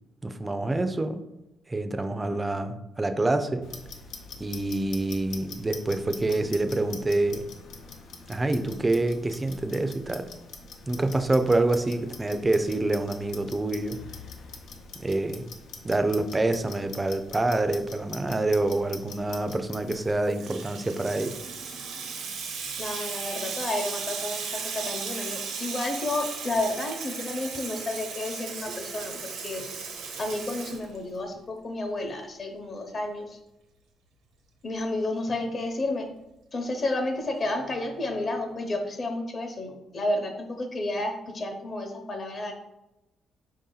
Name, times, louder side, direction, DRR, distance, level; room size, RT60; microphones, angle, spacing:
voice 1, 0.2-1.2 1.7-3.7 4.4-7.4 8.3-10.2 10.9-14.0 15.0-15.5 15.8-21.4, right 2 dB, 20° right, 8 dB, 0.4 m, -26 dB
Clock, 3.6-20.1, left 4 dB, 75° left, 0.7 m, -44 dB
Water tap faucet / Sink (filling or washing), 19.9-31.4, right 5 dB, 85° right, 0.8 m, -36 dB
voice 2, 22.8-29.6 30.2-33.4 34.6-36.1 36.5-42.5, left 2 dB, 40° left, 4 dB, 0.9 m, -31 dB
4.6 x 2.7 x 3.8 m, 0.94 s
cardioid pair, 90°, 0 cm